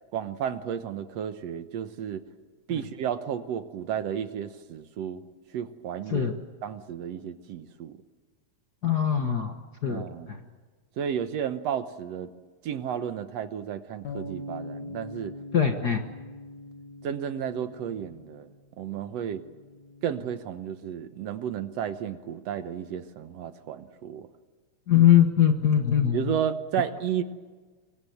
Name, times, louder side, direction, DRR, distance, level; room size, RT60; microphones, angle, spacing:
voice 1, 0.1-2.2 2.7-5.2 5.5-6.3 6.6-8.0 9.9-10.4 11.0-12.3 12.6-15.3 17.0-18.5 18.8-19.4 20.0-24.3 26.1-27.2, right 9 dB, 65° right, 10 dB, 1.9 m, -32 dB
voice 2, 8.8-9.5 9.8-10.4 15.5-16.0 24.9-26.2, left 9 dB, 50° left, 5 dB, 1.2 m, -21 dB
sound 1, 14.0-20.3, left 1 dB, 70° left, 3.5 m, -43 dB
24.5 x 23.5 x 7.9 m, 1.4 s
omnidirectional pair, 3.6 m